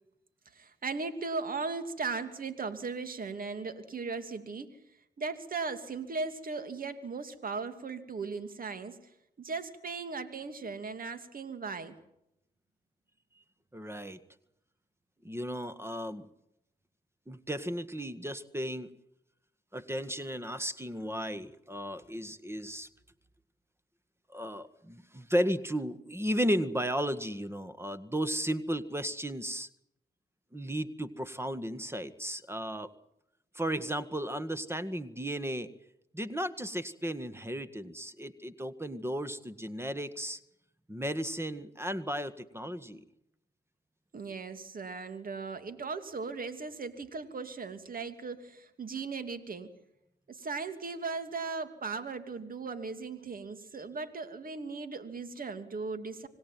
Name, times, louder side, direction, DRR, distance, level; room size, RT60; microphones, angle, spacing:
voice 1, 0.5-4.8 5.2-9.1 9.4-11.9 44.1-49.7 50.3-56.3, right 4 dB, 55° right, 9 dB, 2.8 m, -37 dB
voice 2, 13.7-14.2 15.2-16.3 17.3-18.9 19.7-22.9 24.3-29.7 30.5-32.9 33.5-35.7 36.1-40.4 40.9-43.0, equal, 15° right, 12 dB, 1.8 m, -34 dB
26.0 x 18.0 x 9.3 m, 0.83 s
supercardioid pair, 50°, 18 cm